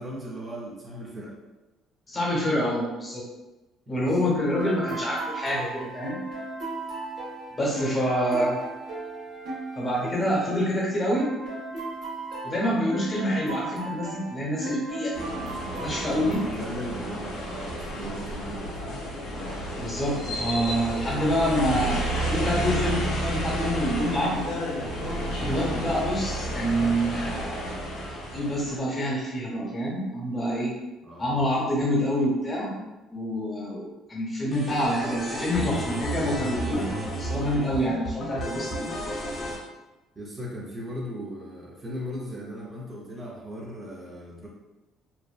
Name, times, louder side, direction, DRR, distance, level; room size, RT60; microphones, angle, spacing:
voice 1, 0.0-1.3 3.9-4.1 15.6-19.0 31.0-31.4 40.2-44.5, equal, 30° right, -3 dB, 0.5 m, -38 dB
voice 2, 2.1-3.2 3.9-6.2 7.6-8.6 9.8-11.3 12.4-15.2 15.8-16.4 19.7-24.4 25.4-27.7 28.1-30.7 31.2-32.7 33.1-36.9 37.1-38.9, equal, 30° left, -4 dB, 1.0 m, -27 dB
sound 1, 4.4-16.4, right 2 dB, 70° right, 0.8 m, -36 dB
sound 2, 15.1-28.8, equal, 85° left, 0.7 m, -31 dB
sound 3, 34.5-39.6, right 1 dB, 50° left, 0.6 m, -32 dB
2.6 x 2.1 x 2.3 m, 1.1 s
supercardioid pair, 85°, 0 cm